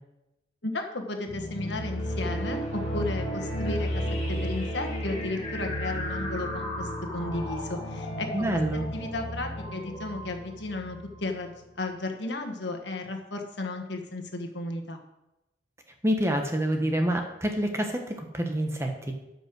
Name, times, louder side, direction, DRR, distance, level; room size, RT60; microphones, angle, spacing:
voice 1, 0.6-4.0 4.3-8.6 8.9-15.0, left 2 dB, 65° left, 4 dB, 1.5 m, -34 dB
sound 1, 1.3-11.5, equal, 35° left, 2.6 m, -33 dB
voice 2, 8.3-8.8 16.0-19.1, right 1 dB, 15° right, 4 dB, 1.2 m, -27 dB
12.5 x 5.6 x 6.1 m, 0.95 s
head